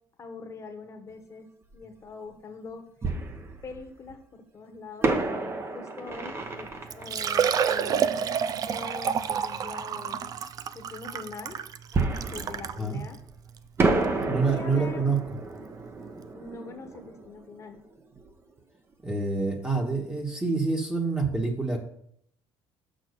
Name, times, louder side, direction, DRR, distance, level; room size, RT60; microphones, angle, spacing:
voice 1, 0.2-1.5 1.7-2.8 3.6-8.2 8.7-10.3 10.7-11.6 12.3-13.2 14.5-15.1 16.3-17.8, left 4 dB, 30° left, 6 dB, 1.4 m, -43 dB
Fireworks, 1.7-1.8 3.0-4.1 5.0-8.5 11.9-13.4 13.8-18.3 18.6-18.7 19.2-19.4, right 3 dB, 25° right, 1.1 m, -31 dB
Liquid, 6.4-6.5 6.9-12.8 13.5-13.6 14.0-14.1 15.8-15.9 16.0-16.1, right 7 dB, 40° right, 0.5 m, -29 dB
voice 2, 14.3-15.4 19.0-21.8, right 3 dB, 10° right, 0 dB, 1.4 m, -27 dB
6.4 x 5.9 x 6.7 m, 0.69 s
cardioid pair, 120°, 9 cm